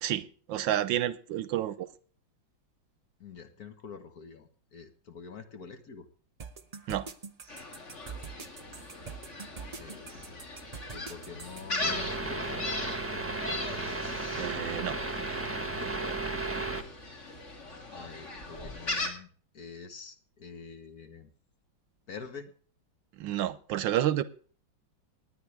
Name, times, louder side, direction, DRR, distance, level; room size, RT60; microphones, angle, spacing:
voice 1, 0.0-1.9 6.9-7.1 14.3-15.0 23.2-24.2, right 12 dB, 75° right, 1.4 m, -30 dB
voice 2, 3.2-6.1 9.8-10.4 10.9-12.7 17.9-19.3 19.5-21.3 22.1-22.5, left 5 dB, 50° left, 1.8 m, -46 dB
sound 1, 6.4-11.6, right 5 dB, 45° right, 0.5 m, -44 dB
Gull seagull, 7.5-19.1, left 2 dB, 35° left, 2.6 m, -39 dB
sound 2, 11.8-16.8, right 2 dB, 10° right, 1.1 m, -34 dB
18.5 x 10.5 x 3.5 m
omnidirectional pair, 2.2 m